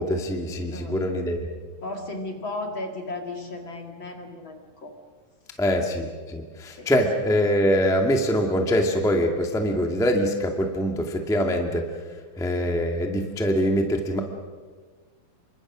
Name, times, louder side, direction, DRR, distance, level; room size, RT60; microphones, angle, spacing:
voice 1, 0.0-1.4 5.6-11.8 12.4-14.2, equal, ahead, 3 dB, 1.0 m, -23 dB
voice 2, 1.8-4.9 6.7-6.9, left 2 dB, 40° left, 4 dB, 2.2 m, -35 dB
28.0 x 24.0 x 6.3 m, 1.5 s
omnidirectional pair, 4.2 m